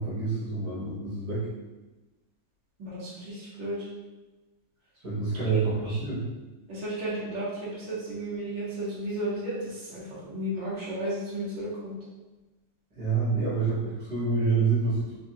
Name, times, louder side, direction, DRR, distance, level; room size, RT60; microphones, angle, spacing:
voice 1, 0.0-1.5 5.0-6.2 12.9-15.2, right 4 dB, 60° right, -8 dB, 1.6 m, -27 dB
voice 2, 2.8-3.9 5.4-6.0 6.7-11.9, right 1 dB, 75° right, -9 dB, 1.9 m, -34 dB
4.2 x 2.6 x 2.7 m, 1.1 s
omnidirectional pair, 2.0 m